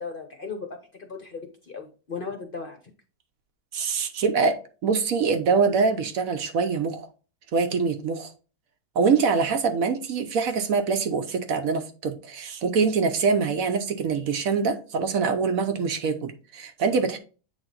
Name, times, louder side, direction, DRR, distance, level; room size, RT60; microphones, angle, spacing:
voice 1, 0.0-2.8, left 4 dB, 45° left, 4 dB, 0.8 m, -36 dB
voice 2, 3.7-7.1 7.5-8.3 9.0-17.2, right 5 dB, 65° right, 7 dB, 1.1 m, -24 dB
8.1 x 3.5 x 3.8 m, 0.36 s
omnidirectional pair, 1.6 m